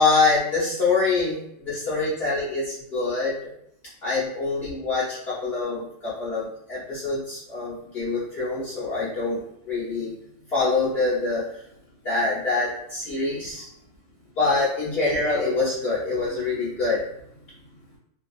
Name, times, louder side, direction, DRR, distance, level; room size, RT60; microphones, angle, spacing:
voice 1, 0.0-3.5 4.0-9.4 9.6-10.1 10.5-11.6 12.0-13.7 14.4-17.0, left 3 dB, 55° left, -10 dB, 0.9 m, -25 dB
2.6 x 2.3 x 2.3 m, 0.76 s
omnidirectional pair, 1.4 m